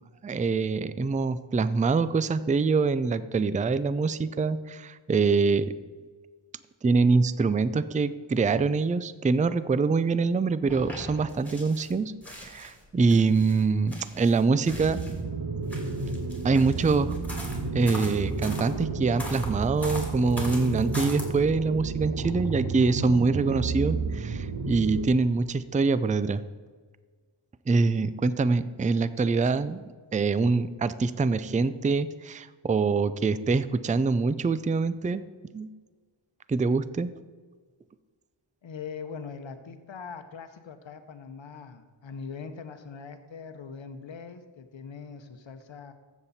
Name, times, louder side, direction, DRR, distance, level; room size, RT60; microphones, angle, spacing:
voice 1, 0.2-5.7 6.8-15.0 16.4-17.1 17.7-26.4 27.7-29.8 30.1-35.2 35.5-35.7 36.5-37.1, right 4 dB, 20° right, 15 dB, 0.3 m, -25 dB
sound 1, 10.7-11.9 12.2-15.2 15.6-18.7 19.2-21.2, left 1 dB, 5° left, 2.7 m, -41 dB
sound 2, 14.7-25.0, right 4 dB, 50° right, 1.2 m, -32 dB
voice 2, 38.6-45.9, left 5 dB, 70° left, 8 dB, 0.9 m, -41 dB
14.5 x 7.3 x 4.2 m, 1.5 s
wide cardioid pair, 85°, 48 cm